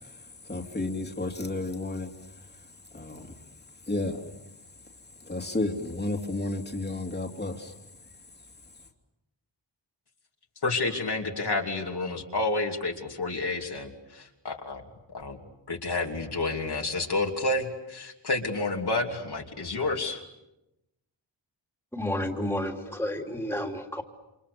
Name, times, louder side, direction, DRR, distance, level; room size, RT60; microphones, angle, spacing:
voice 1, 0.0-3.4 3.9-4.2 5.2-7.8, left 2 dB, 20° left, 2 dB, 3.0 m, -33 dB
voice 2, 10.6-14.8 15.1-15.4 15.7-20.2, left 2 dB, 60° left, 1 dB, 3.0 m, -30 dB
voice 3, 21.9-24.0, left 1 dB, 5° left, 1 dB, 3.3 m, -31 dB
29.5 x 27.5 x 7.0 m, 0.93 s
wide cardioid pair, 130°, 45 cm